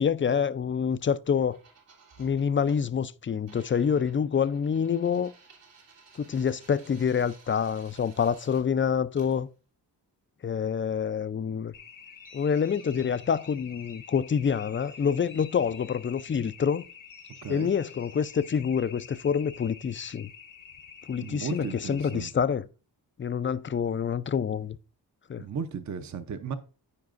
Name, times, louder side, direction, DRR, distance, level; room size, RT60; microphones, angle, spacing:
voice 1, 0.0-1.6 2.2-5.3 6.2-9.5 10.4-11.7 12.3-16.8 17.5-20.3 21.1-22.7 23.2-24.8 25.3-25.5, left 7 dB, 30° left, 0.4 m, -27 dB
sound 1, 1.5-2.8 3.5-8.6 9.1-9.4, right 4 dB, 80° right, 2.9 m, -56 dB
sound 2, 11.7-22.3, left 7 dB, 50° left, 0.8 m, -48 dB
sound 3, 12.0-14.1 14.5-16.4 17.0-19.5, left 1 dB, 65° right, 3.1 m, -60 dB
voice 2, 17.4-17.7 21.2-22.3 25.4-26.5, right 6 dB, 45° right, 0.7 m, -35 dB
14.0 x 4.8 x 2.5 m
cardioid pair, 75°, 42 cm